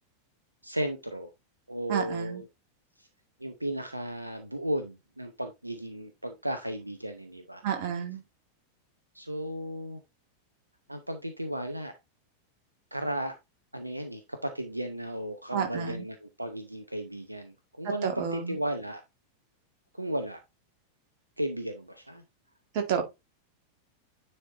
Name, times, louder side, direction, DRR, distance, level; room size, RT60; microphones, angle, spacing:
voice 1, 0.6-1.3 1.7-2.5 3.0-3.1 3.4-7.6 9.1-10.0 10.9-11.9 12.9-13.4 13.7-19.0 19.9-20.4 21.4-22.2, right 1 dB, 85° right, 0.7 m, -35 dB
voice 2, 1.9-2.4 7.6-8.2 15.5-16.0 18.0-18.6 22.7-23.0, right 7 dB, 50° right, 1.9 m, -30 dB
9.8 x 4.3 x 2.9 m
figure-of-eight pair, 90°, 0 cm